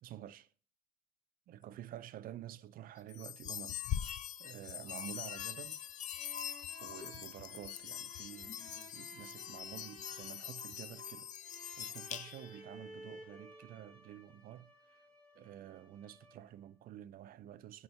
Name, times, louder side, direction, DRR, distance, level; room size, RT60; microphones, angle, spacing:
voice 1, 0.0-0.5 1.5-4.0 4.4-5.9 6.8-11.3 11.8-15.0 15.3-17.8, right 11 dB, 60° right, 0.5 m, -50 dB
sound 1, 3.1-12.6, left 10 dB, 45° left, 0.4 m, -43 dB
sound 2, 5.8-16.6, right 1 dB, 5° left, 1.2 m, -57 dB
10.0 x 3.8 x 3.4 m
cardioid pair, 110°, 17 cm